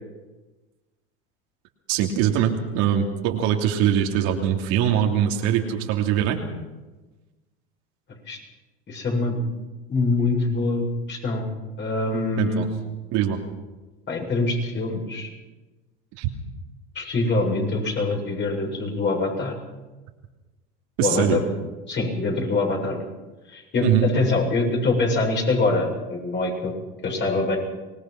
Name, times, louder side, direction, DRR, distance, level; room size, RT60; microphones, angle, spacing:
voice 1, 1.9-6.4 12.4-12.7 13.1-13.4 16.2-16.3 21.0-21.4 23.8-24.1, right 10 dB, 65° right, 2 dB, 3.0 m, -22 dB
voice 2, 8.9-9.4 9.9-11.4 11.8-12.7 14.1-15.3 16.9-19.6 21.0-21.4 21.9-23.1 23.5-26.7 27.0-27.6, left 3 dB, 35° left, 1 dB, 7.5 m, -24 dB
25.0 x 19.5 x 6.0 m, 1.2 s
supercardioid pair, 100°, 31 cm